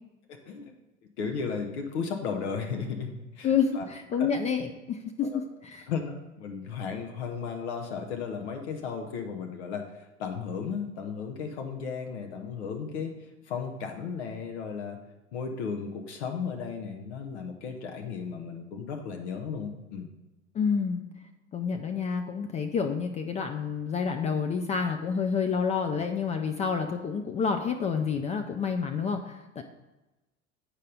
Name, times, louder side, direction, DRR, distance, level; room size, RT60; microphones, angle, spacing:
voice 1, 0.3-0.7 1.2-3.8 4.2-4.3 5.3-5.4 5.9-13.1 13.5-15.0 15.3-20.1, left 6 dB, 60° left, 3 dB, 0.9 m, -35 dB
voice 2, 3.4-5.9 20.5-21.0 21.5-29.6, left 6 dB, 20° left, 5 dB, 0.4 m, -29 dB
8.4 x 5.3 x 3.8 m, 1.1 s
figure-of-eight pair, 70°, 37 cm